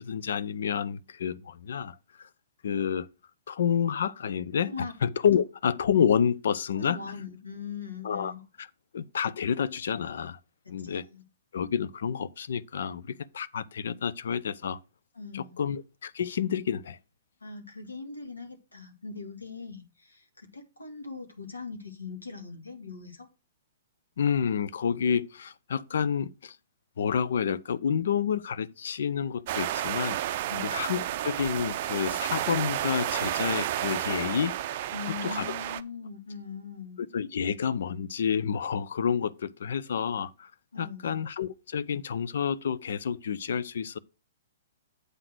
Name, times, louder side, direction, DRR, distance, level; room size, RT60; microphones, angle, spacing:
voice 1, 0.0-2.3 2.6-3.1 3.5-4.7 5.0-7.0 8.0-8.3 8.6-8.7 8.9-10.4 10.7-11.0 11.5-14.8 15.3-17.0 24.2-26.6 27.0-30.2 30.6-34.6 35.2-35.5 37.0-40.5 40.8-44.0, left 7 dB, 65° left, 0.5 m, -29 dB
voice 2, 6.7-8.4 10.6-11.2 15.1-15.6 17.4-23.3 30.5-30.7 34.9-37.0 40.7-41.2, left 4 dB, 85° left, 1.7 m, -41 dB
sound 1, 29.5-35.8, right 13 dB, 50° right, 0.4 m, -31 dB
8.0 x 3.8 x 6.1 m
figure-of-eight pair, 115°, 0 cm